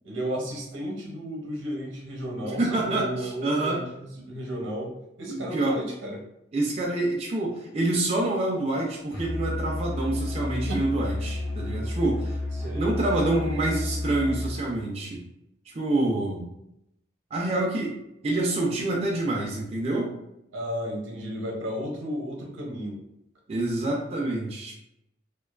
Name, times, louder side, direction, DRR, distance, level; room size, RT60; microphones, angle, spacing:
voice 1, 0.0-6.2 10.7-10.8 12.6-12.8 20.5-23.0, equal, 80° right, 0 dB, 0.7 m, -33 dB
voice 2, 2.4-3.8 5.3-5.8 6.5-12.4 12.7-15.2 15.7-16.5 17.3-18.0 18.2-20.1 23.5-24.7, right 2 dB, 30° right, -2 dB, 0.3 m, -27 dB
Musical instrument, 9.1-14.6, left 1 dB, 55° left, 0.8 m, -31 dB
2.4 x 2.2 x 2.3 m, 0.81 s
head